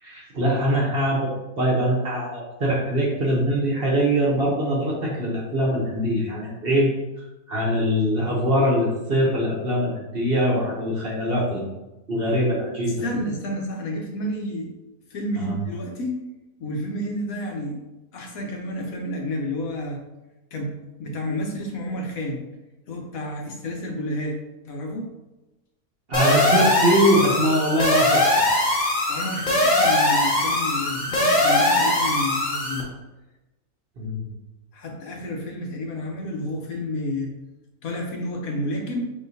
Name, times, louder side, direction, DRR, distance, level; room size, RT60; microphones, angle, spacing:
voice 1, 0.0-1.3 1.6-6.9 7.5-11.7 12.1-13.0 15.4-15.6 26.1-28.2 34.0-34.3, equal, 45° right, -3 dB, 1.0 m, -22 dB
voice 2, 12.8-14.7 15.1-16.1 16.6-17.8 18.1-20.0 20.5-22.4 22.9-24.4 24.6-25.1 29.1-32.9 34.7-37.3 37.8-39.0, left 1 dB, 70° left, 1 dB, 1.2 m, -30 dB
sound 1, 26.1-32.8, left 1 dB, 30° left, 1.1 m, -21 dB
5.3 x 3.7 x 2.7 m, 1.0 s
omnidirectional pair, 1.6 m